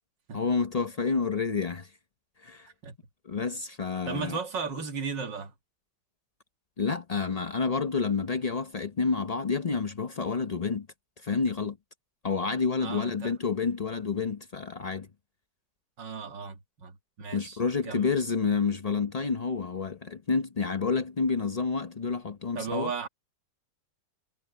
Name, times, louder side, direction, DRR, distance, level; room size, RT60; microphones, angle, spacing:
voice 1, 0.3-1.9 2.4-2.7 3.2-4.4 6.8-10.9 11.2-11.8 12.2-15.1 17.3-22.9, left 5 dB, 70° left, 0.3 m, -29 dB
voice 2, 2.6-3.0 4.1-5.5 12.8-13.3 16.0-18.1 22.5-23.1, right 5 dB, 70° right, 2.4 m, -36 dB
omnidirectional pair, 2.0 m